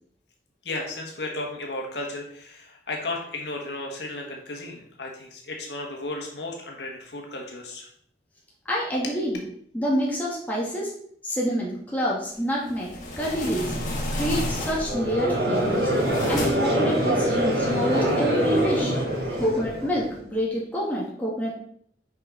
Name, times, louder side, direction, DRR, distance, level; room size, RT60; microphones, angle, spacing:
voice 1, 0.6-7.9 9.0-9.2 19.0-19.4, left 2 dB, 75° left, 0 dB, 1.4 m, -34 dB
voice 2, 8.7-9.4 9.7-10.9 11.2-13.7 14.1-15.9 16.3-18.9 19.4-21.5, equal, 10° left, -5 dB, 1.7 m, -27 dB
sound 1, 12.6-15.1 15.6-16.8, left 1 dB, 45° left, 1.5 m, -31 dB
Conversation / Crowd, 14.8-20.1, equal, 80° right, 3.0 m, -24 dB
6.4 x 5.1 x 3.9 m, 0.64 s
head